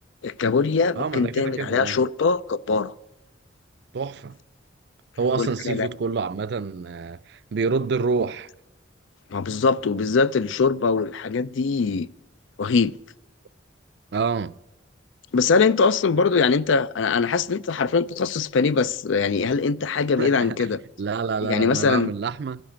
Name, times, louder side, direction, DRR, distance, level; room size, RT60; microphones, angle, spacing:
voice 1, 0.2-2.9 5.4-5.9 9.3-12.1 12.6-12.9 15.3-20.8 21.4-22.1, left 4 dB, 75° left, 0.4 m, -22 dB
voice 2, 1.0-2.0 3.9-4.4 5.2-8.5 14.1-14.5 20.2-20.7 21.0-22.6, right 5 dB, 60° right, 0.4 m, -27 dB
12.5 x 10.5 x 8.6 m
head